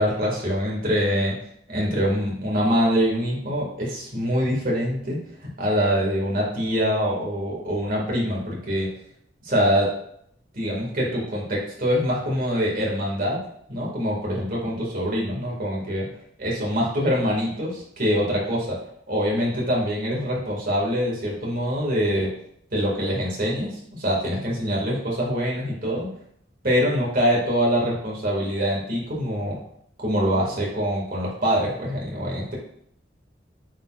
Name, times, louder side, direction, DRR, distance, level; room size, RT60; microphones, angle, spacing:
voice 1, 0.0-1.3 1.7-5.2 5.6-8.9 9.4-9.9 10.5-13.4 13.7-16.0 16.4-18.8 19.1-22.3 22.7-26.1 26.6-29.6 30.0-32.6, equal, 50° right, -4 dB, 2.2 m, -24 dB
8.6 x 4.4 x 2.5 m, 0.69 s
head